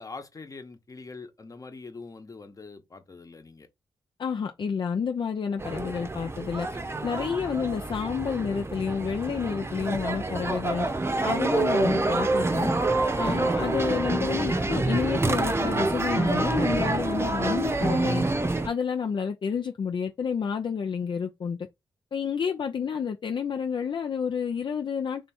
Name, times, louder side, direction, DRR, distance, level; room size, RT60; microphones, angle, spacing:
voice 1, 0.0-3.7 11.2-11.3, left 4 dB, 35° left, 1.1 m, -43 dB
voice 2, 4.2-6.7 7.0-10.9 11.2-12.7 13.2-18.2 18.6-21.6 22.1-25.3, left 6 dB, 55° left, 0.6 m, -30 dB
sound 1, 5.6-18.7, right 2 dB, 25° right, 0.8 m, -27 dB
3.5 x 2.8 x 4.3 m
cardioid pair, 55°, 10 cm